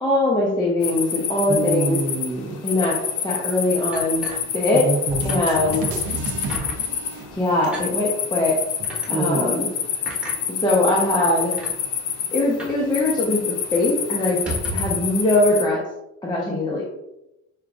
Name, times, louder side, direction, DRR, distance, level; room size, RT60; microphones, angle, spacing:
voice 1, 0.0-2.0 2.6-3.0 3.2-4.2 4.5-4.9 5.2-5.8 7.3-8.6 9.1-9.7 10.6-11.5 12.3-13.4 13.7-14.4 14.7-15.8 16.2-16.8, left 2 dB, 15° left, -4 dB, 0.8 m, -21 dB
sound 1, 0.8-15.6, left 8 dB, 85° left, 0.6 m, -28 dB
voice 2, 1.5-2.6 4.8-5.4 9.1-9.6, right 3 dB, 25° right, 0 dB, 0.5 m, -25 dB
sound 2, 3.9-5.0 5.3-5.5 5.9-6.0 6.5-6.8 7.6-7.9 8.8-9.1 10.1-10.4 11.2-11.3 11.5-11.7 12.6-12.9 13.1-13.2 13.6-13.7 14.3-15.1, right 1 dB, 5° right, 1.4 m, -33 dB
sound 3, 5.1-8.0, right 3 dB, 85° right, 0.7 m, -32 dB
6.5 x 2.3 x 2.4 m, 0.89 s
cardioid pair, 90°, 30 cm